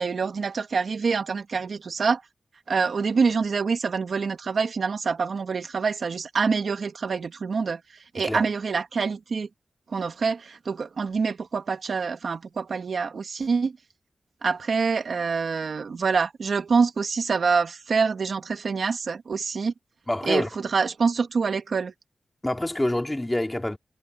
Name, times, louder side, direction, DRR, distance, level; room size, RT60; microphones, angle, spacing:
voice 1, 0.0-2.2 2.7-7.8 8.1-9.5 9.9-13.7 14.4-19.7 20.3-21.9, right 5 dB, 75° right, 2.3 m, -26 dB
voice 2, 20.1-20.5 22.4-23.8, left 1 dB, 15° left, 2.8 m, -26 dB
cardioid pair, 60°, 0 cm